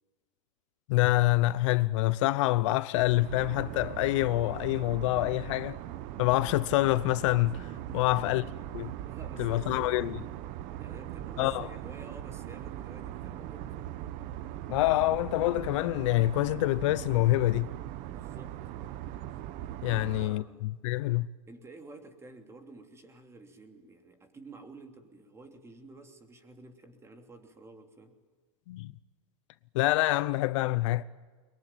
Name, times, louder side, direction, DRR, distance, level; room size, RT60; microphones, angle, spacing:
voice 1, 0.9-5.8 6.2-8.4 8.7-8.9 9.4-10.2 11.4-11.7 14.7-17.7 19.8-20.4 20.8-21.3 28.7-28.9 29.7-31.0, left 17 dB, 65° left, 0.8 m, -26 dB
sound 1, 2.9-20.3, right 13 dB, 50° right, 1.1 m, -40 dB
voice 2, 7.9-8.7 9.1-10.3 10.8-14.0 18.1-18.6 19.9-20.7 21.5-28.2, right 2 dB, 15° right, 3.0 m, -51 dB
22.5 x 22.0 x 9.3 m
supercardioid pair, 125°, 17 cm